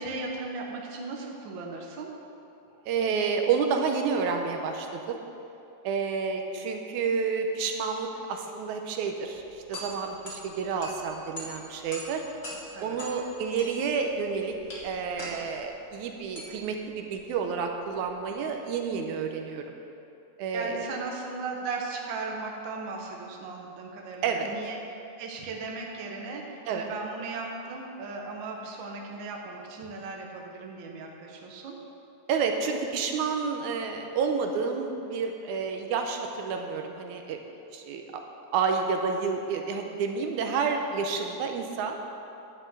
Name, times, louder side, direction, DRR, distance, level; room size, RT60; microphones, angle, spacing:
voice 1, 0.0-2.1 2.7-2.8 12.7-13.0 20.5-24.8 25.2-31.8, right 3 dB, 55° right, 0 dB, 1.3 m, -37 dB
voice 2, 2.9-5.2 5.8-12.2 12.8-14.6 14.8-19.7 20.4-20.9 24.2-24.5 26.7-26.9 32.3-37.4 37.7-38.0 38.5-42.0, right 5 dB, 80° right, 4 dB, 2.1 m, -29 dB
sound 1, 9.3-18.4, left 1 dB, 30° left, 1.4 m, -44 dB
10.5 x 6.0 x 7.9 m, 2.8 s
omnidirectional pair, 3.5 m